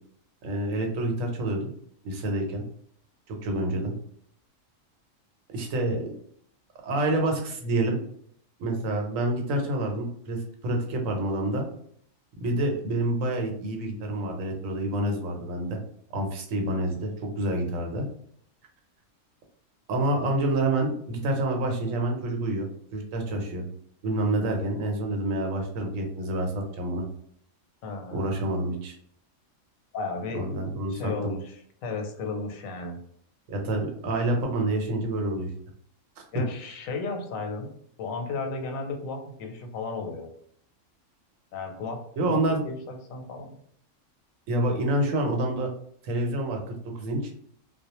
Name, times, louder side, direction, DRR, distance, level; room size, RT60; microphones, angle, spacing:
voice 1, 0.4-1.7 2.0-2.6 3.3-3.9 5.5-6.1 6.8-8.0 8.6-11.7 12.4-15.8 16.1-18.0 19.9-23.6 24.0-27.0 28.1-29.0 30.3-31.3 33.5-35.5 36.3-36.4 42.2-42.6 44.5-45.7 46.0-47.2, right 1 dB, 85° right, 3 dB, 1.0 m, -28 dB
voice 2, 27.8-28.3 29.9-30.4 30.9-31.6 31.8-33.0 36.3-37.7 38.0-40.3 41.5-42.0 42.3-43.5, left 3 dB, 90° left, 4 dB, 1.0 m, -34 dB
2.3 x 2.0 x 2.8 m, 0.63 s
omnidirectional pair, 1.3 m